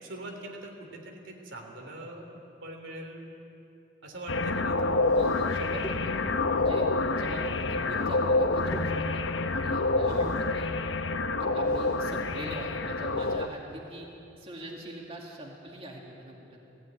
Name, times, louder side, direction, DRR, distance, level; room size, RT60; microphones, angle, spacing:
voice 1, 0.0-2.3 2.6-3.3 4.0-5.1, right 1 dB, 85° right, 1 dB, 3.2 m, -43 dB
sound 1, 4.3-13.5, left 3 dB, 80° left, 0.9 m, -27 dB
sound 2, 4.5-4.6 5.0-6.4 7.5-8.3 8.5-9.4 10.0-10.6 11.6-12.6 13.2-13.3, equal, 20° left, 2.9 m, -42 dB
voice 2, 5.1-6.1 6.5-6.9 7.1-10.7 11.4-14.1 14.4-16.6, right 1 dB, 30° right, -1 dB, 2.3 m, -43 dB
17.5 x 16.5 x 9.6 m, 3.0 s
head